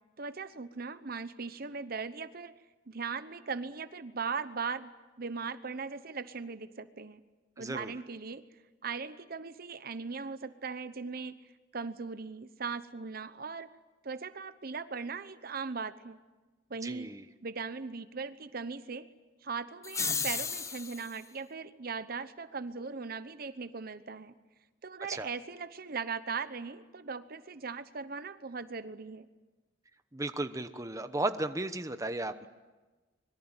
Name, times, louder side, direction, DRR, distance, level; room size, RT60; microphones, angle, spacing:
voice 1, 0.2-2.5 2.9-4.9 5.2-7.2 7.6-8.4 8.8-11.4 11.7-13.7 14.0-16.2 16.7-17.1 17.4-19.1 19.4-24.3 24.8-29.3, right 5 dB, 55° right, 12 dB, 0.9 m, -39 dB
voice 2, 7.6-7.9 16.8-17.3 25.1-25.3 30.1-32.5, right 2 dB, 20° right, 9 dB, 1.0 m, -35 dB
sound 1, 19.8-21.2, left 5 dB, 15° left, 0.8 m, -34 dB
26.0 x 22.5 x 9.0 m, 1.2 s
head